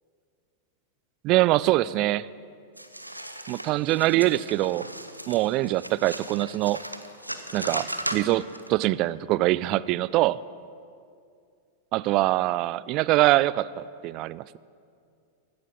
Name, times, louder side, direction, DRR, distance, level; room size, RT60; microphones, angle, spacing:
voice 1, 1.2-2.3 3.5-4.9 5.3-6.8 7.5-10.4 11.9-14.6, right 17 dB, 40° right, 20 dB, 0.3 m, -24 dB
sound 1, 2.8-8.7, right 1 dB, 90° right, 0.7 m, -37 dB
16.0 x 12.0 x 5.3 m, 2.3 s
figure-of-eight pair, 90°, 0 cm